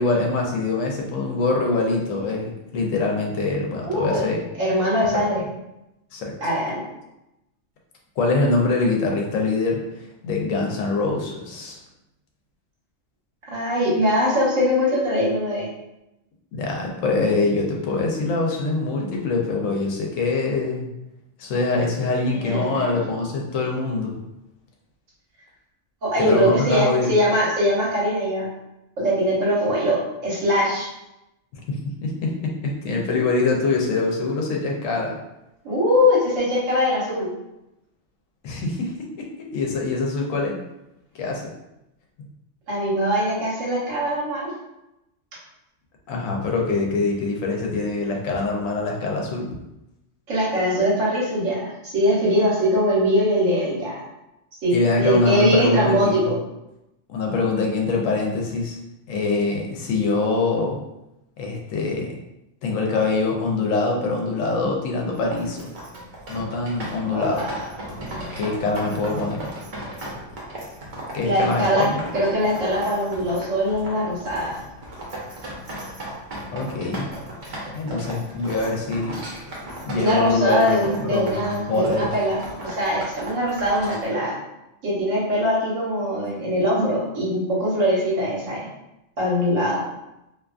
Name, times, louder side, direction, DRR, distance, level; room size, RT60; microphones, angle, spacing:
voice 1, 0.0-4.4 6.1-6.3 8.2-11.8 16.5-20.9 21.4-24.2 26.2-27.1 31.7-35.2 38.4-40.6 41.1-41.4 42.2-42.3 46.1-49.5 54.7-56.3 57.1-58.8 59.1-60.8 61.4-62.2 62.6-65.7 66.3-67.5 68.3-69.5 71.1-72.0 76.5-77.1 77.7-79.2 79.8-82.1, left 3 dB, 75° left, 0 dB, 0.9 m, -24 dB
voice 2, 3.8-4.2 4.6-5.4 6.4-6.8 13.5-15.7 22.3-22.9 26.0-28.5 29.0-30.9 35.6-37.3 42.7-44.5 50.3-54.0 54.6-56.4 67.0-67.7 71.2-71.9 72.1-74.5 80.0-84.3 84.8-88.6 89.2-89.8, equal, 70° right, -6 dB, 1.3 m, -22 dB
sound 1, 65.1-84.1, right 1 dB, 50° right, 0.7 m, -36 dB
2.7 x 2.3 x 2.4 m, 0.90 s
omnidirectional pair, 1.4 m